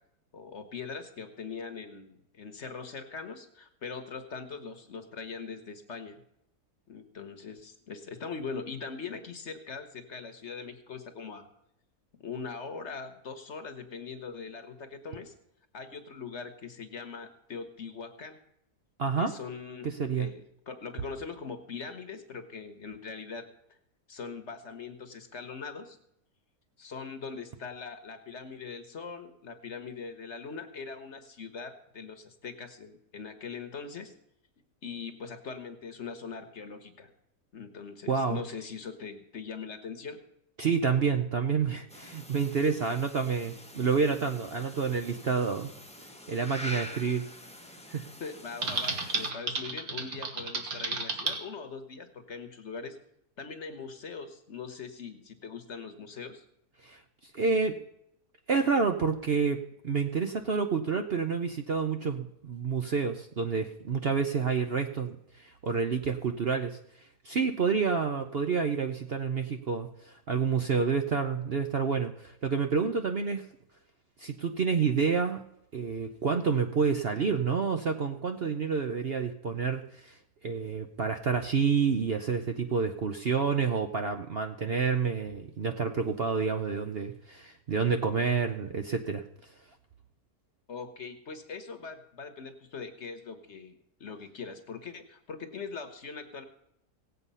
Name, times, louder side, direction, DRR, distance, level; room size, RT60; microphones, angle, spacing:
voice 1, 0.3-6.2 6.9-11.5 12.2-15.3 15.7-18.4 19.2-19.9 20.2-23.4 24.1-26.0 26.8-34.1 34.8-37.1 37.5-40.2 48.2-53.0 53.4-56.4 90.7-96.4, left 5 dB, 50° left, 8 dB, 1.3 m, -41 dB
voice 2, 19.0-19.3 19.8-20.3 38.1-38.4 40.6-45.7 46.3-47.3 47.9-48.1 56.8-57.8 58.5-66.8 67.2-73.5 74.2-75.4 75.7-80.2 80.4-89.2, right 5 dB, 50° right, 6 dB, 0.8 m, -29 dB
sound 1, 41.9-49.3, left 1 dB, 5° left, 1.0 m, -46 dB
Typing, 48.6-51.4, right 3 dB, 65° right, 2.1 m, -32 dB
17.5 x 8.2 x 5.5 m, 0.77 s
omnidirectional pair, 1.7 m